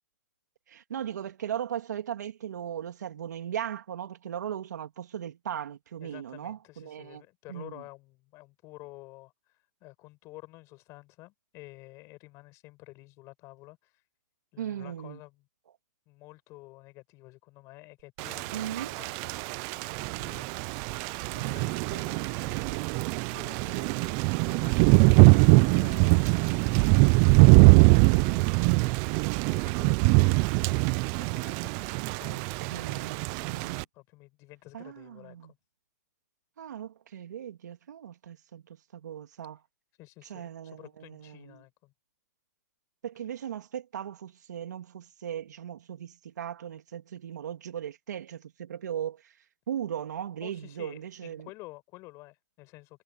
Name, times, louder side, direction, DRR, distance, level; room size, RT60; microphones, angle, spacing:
voice 1, 0.7-7.2 7.5-7.8 14.6-15.2 18.5-19.0 32.3-33.8 34.7-35.5 36.6-39.6 40.3-41.6 43.0-49.3 49.7-51.5, right 9 dB, 80° right, 3.1 m, -38 dB
voice 2, 6.0-14.0 14.5-15.4 16.1-19.3 19.7-21.0 21.3-22.8 23.3-26.4 26.7-28.5 29.5-32.4 33.5-35.6 40.0-41.9 50.4-53.0, left 21 dB, 30° left, 6.3 m, -51 dB
Thunder / Rain, 18.2-33.8, right 28 dB, 35° right, 0.5 m, -23 dB
hypercardioid pair, 150°, 9 cm